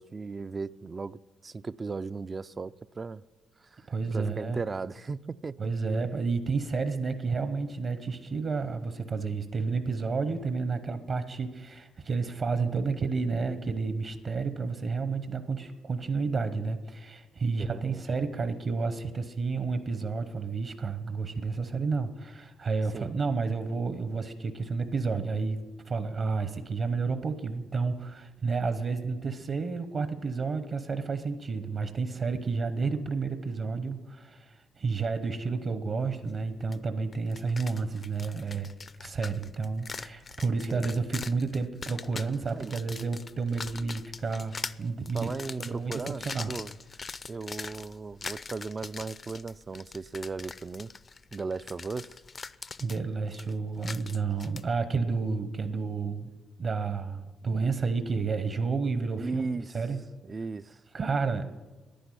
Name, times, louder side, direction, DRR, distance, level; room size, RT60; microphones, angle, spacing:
voice 1, 0.0-3.2 3.6-5.6 17.5-18.0 22.9-23.1 40.7-40.9 42.5-42.7 45.1-46.7 47.3-50.9 51.3-52.1 59.2-59.8 60.2-60.8, right 4 dB, 30° right, 0.4 m, -36 dB
voice 2, 3.9-4.6 5.6-38.7 39.0-45.3 45.6-46.5 52.8-56.3 56.6-59.5 59.7-60.0 60.9-61.6, right 4 dB, 50° right, 0.9 m, -31 dB
sound 1, 36.7-36.8 37.1-54.6, left 4 dB, 35° left, 0.5 m, -42 dB
10.5 x 10.0 x 9.9 m
cardioid pair, 90°, 0 cm